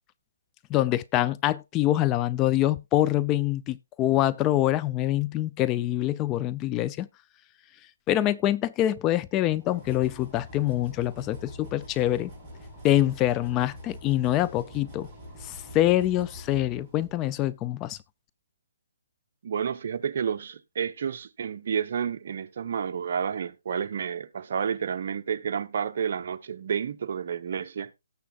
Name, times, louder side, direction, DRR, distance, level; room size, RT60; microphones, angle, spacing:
voice 1, 0.7-7.1 8.1-12.3 12.8-15.1 15.4-18.0, left 14 dB, 20° left, 0.4 m, -25 dB
sound 1, 9.4-17.4, left 1 dB, 5° right, 4.7 m, -45 dB
voice 2, 19.4-27.9, right 7 dB, 55° right, 0.9 m, -30 dB
18.0 x 6.9 x 2.4 m
hypercardioid pair, 155°, 0 cm